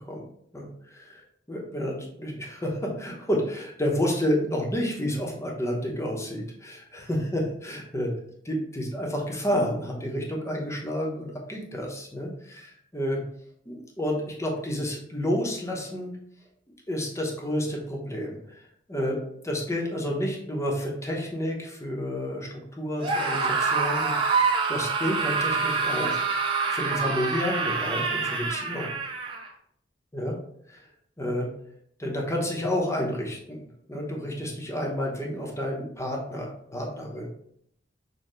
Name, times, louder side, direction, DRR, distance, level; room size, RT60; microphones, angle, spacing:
voice 1, 0.5-1.2 1.5-8.1 8.5-13.2 13.7-16.2 16.9-18.6 18.9-19.2 19.4-26.2 26.7-28.9 30.1-30.4 30.7-30.8 31.2-31.5 32.0-33.6 33.9-37.3, equal, 15° left, -1 dB, 0.9 m, -30 dB
Screaming, 23.0-29.5, right 4 dB, 30° right, 0.7 m, -26 dB
6.5 x 2.3 x 3.1 m, 0.68 s
head